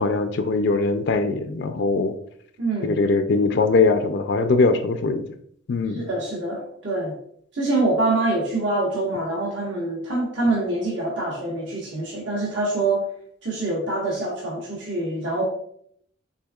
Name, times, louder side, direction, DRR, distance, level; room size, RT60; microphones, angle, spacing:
voice 1, 0.0-2.1 2.8-5.3 5.7-6.0, left 3 dB, 60° left, 8 dB, 0.4 m, -21 dB
voice 2, 2.6-3.0 5.9-7.1 7.5-13.0 13.4-15.4, right 2 dB, 65° right, -4 dB, 1.3 m, -25 dB
6.3 x 3.6 x 2.3 m, 0.66 s
head